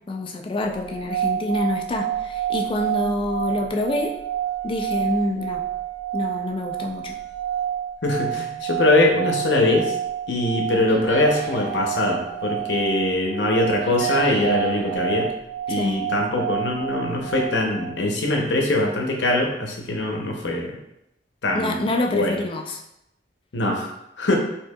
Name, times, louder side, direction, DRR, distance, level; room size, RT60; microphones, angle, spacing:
voice 1, 0.1-4.1 4.6-5.6 6.1-7.2 15.7-16.1 21.5-22.8, left 1 dB, 30° left, 2 dB, 0.4 m, -26 dB
sound 1, 0.8-18.0, right 11 dB, 50° left, 1.4 m, -29 dB
voice 2, 8.0-10.0 10.3-15.3 15.7-20.7 21.4-21.8 22.1-22.4 23.5-23.9 24.2-24.4, left 2 dB, 80° left, 1 dB, 0.7 m, -22 dB
sound 2, 10.9-13.5 13.8-15.2, right 3 dB, 90° right, 1.3 m, -35 dB
4.4 x 2.7 x 2.2 m, 0.81 s
head